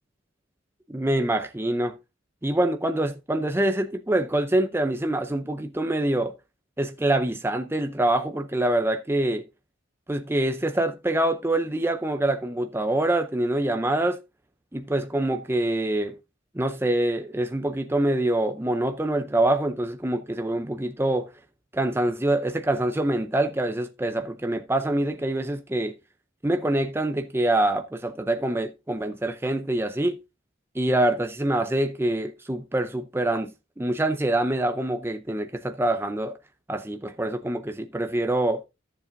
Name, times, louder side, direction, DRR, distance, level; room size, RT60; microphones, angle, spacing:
voice 1, 0.9-2.0 2.4-6.3 6.8-9.4 10.1-14.2 14.7-16.2 16.5-21.3 21.7-26.0 26.4-30.2 30.7-36.4 36.7-38.6, right 1 dB, 10° right, 0.6 m, -25 dB
14.0 x 7.3 x 2.6 m
head